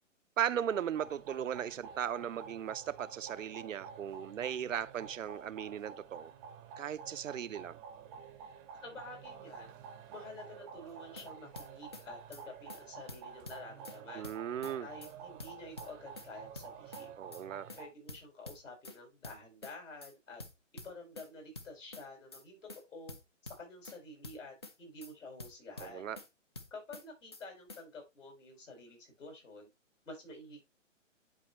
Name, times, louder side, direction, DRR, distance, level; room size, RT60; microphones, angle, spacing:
voice 1, 0.4-6.3 6.8-7.8 14.1-14.9 17.2-17.7 25.8-26.2, right 9 dB, 75° right, 0.6 m, -37 dB
sound 1, 0.6-17.9, right 6 dB, 15° right, 0.6 m, -50 dB
voice 2, 8.8-9.7 10.1-14.3 14.8-17.1 17.8-20.4 20.8-23.2 23.4-26.1 26.7-29.7 30.1-30.6, left 2 dB, 75° left, 5.5 m, -49 dB
sound 2, 10.9-11.3 11.6-12.0 12.3-12.4 12.7-12.8 13.1-14.0 14.2-14.7 15.0-15.1 15.4-16.3 16.6-17.0 17.3-17.4 17.7-17.8 18.1-19.0 19.2-19.7 20.0-20.1 20.4-21.3 21.6-22.0 22.3-22.4 22.7-22.8 23.1-24.0 24.2-24.7 25.0-25.1 25.4-26.3 26.6-27.0 27.3-27.4 27.7-27.8, left 2 dB, 20° left, 0.4 m, -48 dB
10.5 x 4.2 x 3.0 m
hypercardioid pair, 140°, 38 cm